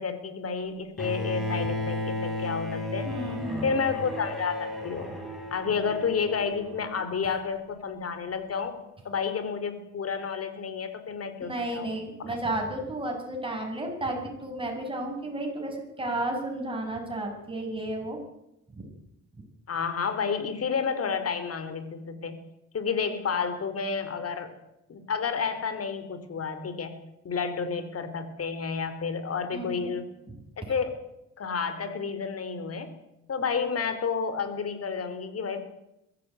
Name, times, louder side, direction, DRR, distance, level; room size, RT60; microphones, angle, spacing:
voice 1, 0.0-3.1 3.6-5.1 5.5-8.8 9.0-11.9 12.2-12.3 19.7-22.4 22.7-24.5 24.9-27.0 27.2-30.0 30.6-31.1 31.4-32.9 33.3-35.6, left 5 dB, 50° left, 11 dB, 4.2 m, -30 dB
Bowed string instrument, 1.0-7.0, left 1 dB, ahead, 7.6 m, -34 dB
voice 2, 3.0-3.8 11.4-18.2 18.8-18.9 29.5-29.9, right 1 dB, 15° right, 1 dB, 8.0 m, -32 dB
22.0 x 15.0 x 9.4 m, 0.87 s
cardioid pair, 90°, 30 cm